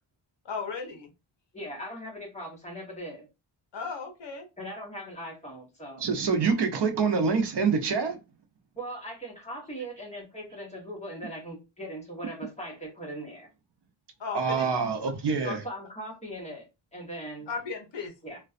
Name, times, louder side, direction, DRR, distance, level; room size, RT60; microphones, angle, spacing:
voice 1, 0.4-1.1 3.7-4.5 14.2-14.7 15.4-15.6 17.5-18.1, left 5 dB, 60° left, 0.7 m, -35 dB
voice 2, 1.5-3.3 4.6-6.1 8.8-13.5 15.6-17.5 18.2-18.4, right 1 dB, 15° left, 0.9 m, -40 dB
voice 3, 6.0-8.2 14.3-15.6, right 5 dB, 60° right, 0.6 m, -26 dB
2.4 x 2.2 x 2.4 m
wide cardioid pair, 165°, 48 cm